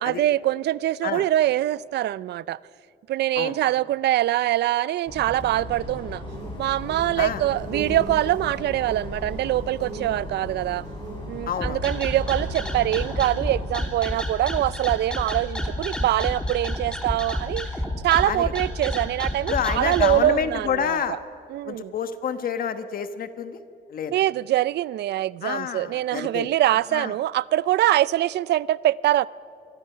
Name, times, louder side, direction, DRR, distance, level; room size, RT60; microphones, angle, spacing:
voice 1, 0.0-2.6 3.1-6.2 6.6-10.8 11.3-17.7 18.0-21.2 21.5-21.9 24.1-29.3, right 14 dB, 70° right, 21 dB, 0.4 m, -24 dB
sound 1, 5.1-13.7, left 1 dB, 25° left, 5.6 m, -36 dB
sound 2, 6.3-12.9, right 3 dB, 45° right, 3.8 m, -40 dB
voice 2, 11.5-11.8 18.3-18.5 19.5-21.2 21.6-23.6 23.9-24.1 25.4-26.5 26.9-27.1, left 7 dB, 55° left, 10 dB, 1.3 m, -28 dB
sound 3, 11.6-20.2, left 1 dB, 5° left, 2.6 m, -29 dB
26.0 x 23.0 x 5.7 m, 2.5 s
cardioid pair, 155°, 18 cm